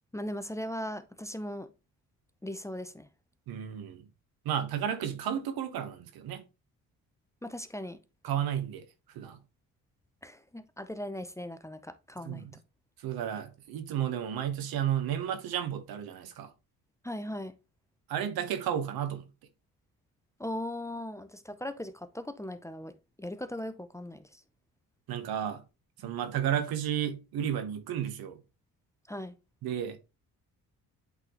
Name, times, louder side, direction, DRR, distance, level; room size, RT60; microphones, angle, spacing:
voice 1, 0.1-1.7 2.4-3.1 7.4-8.0 10.2-12.5 17.0-17.6 20.4-24.4 29.1-29.4, left 1 dB, 10° left, 0.5 m, -38 dB
voice 2, 3.5-4.0 4.4-6.4 8.2-8.8 9.1-9.4 12.3-12.5 13.0-16.5 18.1-19.2 25.1-25.6 26.0-28.4 29.6-30.0, right 9 dB, 85° right, 1.0 m, -32 dB
8.1 x 4.1 x 2.9 m
cardioid pair, 95°, 35 cm